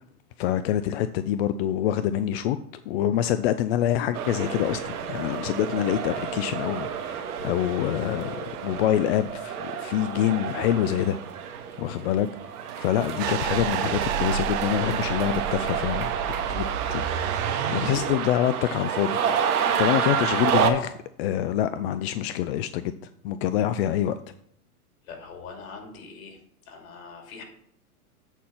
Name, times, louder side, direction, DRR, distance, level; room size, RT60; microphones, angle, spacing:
voice 1, 0.4-2.6 2.9-11.2 11.8-12.3 12.8-16.1 16.5-16.6 16.9-17.4 17.7-19.2 19.8-22.9 23.2-24.2, left 11 dB, 45° left, 12 dB, 0.4 m, -26 dB
sound 1, 4.1-20.7, right 7 dB, 75° right, 1.2 m, -30 dB
sound 2, 13.2-18.3, right 9 dB, 45° right, 0.8 m, -30 dB
voice 2, 25.0-26.4 26.7-27.4, left 5 dB, 65° left, 2 dB, 2.7 m, -43 dB
8.1 x 4.4 x 5.8 m, 0.71 s
hypercardioid pair, 120°, 45 cm